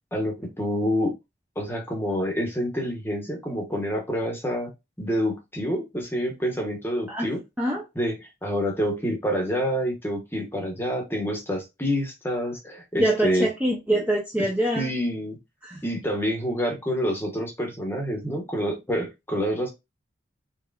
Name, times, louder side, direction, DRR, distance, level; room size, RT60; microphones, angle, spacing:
voice 1, 0.1-1.1 1.6-4.7 5.0-7.4 8.0-8.1 8.4-13.5 14.4-14.5 14.8-15.4 15.8-19.7, equal, 10° left, 0.9 m, -27 dB
voice 2, 12.9-14.9 15.6-15.8, right 1 dB, 10° right, 0.5 m, -24 dB
3.6 x 3.0 x 2.3 m
head